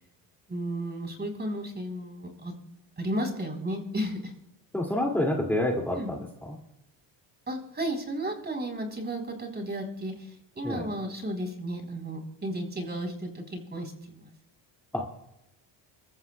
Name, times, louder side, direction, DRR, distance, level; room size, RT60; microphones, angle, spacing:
voice 1, 0.5-2.5 3.0-4.3 5.9-6.1 7.5-10.3 10.6-14.3, right 1 dB, 20° right, 3 dB, 3.9 m, -33 dB
voice 2, 4.7-6.6 10.6-10.9 14.9-15.1, left 1 dB, 5° left, 0 dB, 2.4 m, -28 dB
29.5 x 14.0 x 2.3 m, 0.86 s
cardioid pair, 95°, 47 cm